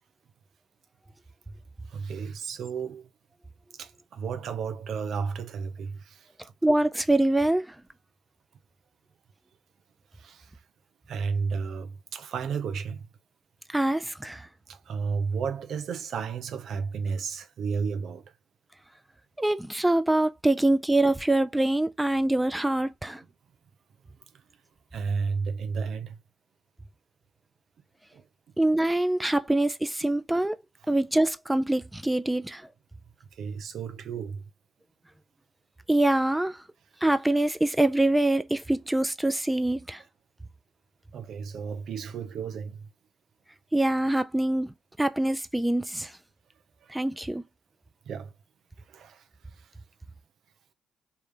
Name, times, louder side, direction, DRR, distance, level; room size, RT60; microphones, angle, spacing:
voice 1, 1.8-3.1 3.7-6.3 10.1-10.6 11.1-13.1 14.7-18.3 24.0-24.4 24.9-26.2 28.1-28.3 30.8-30.9 33.3-34.5 41.1-42.9 46.8-47.0 48.0-48.3 48.8-49.7, right 5 dB, 65° right, 0.8 m, -33 dB
voice 2, 6.6-7.7 13.7-14.5 19.4-23.2 28.6-30.6 30.9-32.6 35.9-36.6 37.0-40.0 43.7-44.7 45.0-46.1 46.9-47.4, right 1 dB, 10° right, 0.6 m, -24 dB
3.8 x 2.8 x 3.4 m
hypercardioid pair, 50°, 0 cm